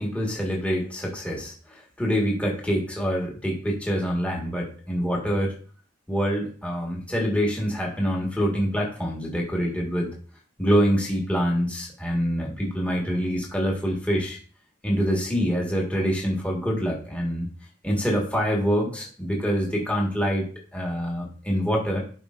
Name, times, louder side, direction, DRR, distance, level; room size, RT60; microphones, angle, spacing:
voice 1, 0.0-5.5 6.1-10.1 10.6-14.4 14.8-17.5 17.8-22.0, equal, 5° left, -2 dB, 1.5 m, -25 dB
12.0 x 4.8 x 2.5 m, 0.42 s
head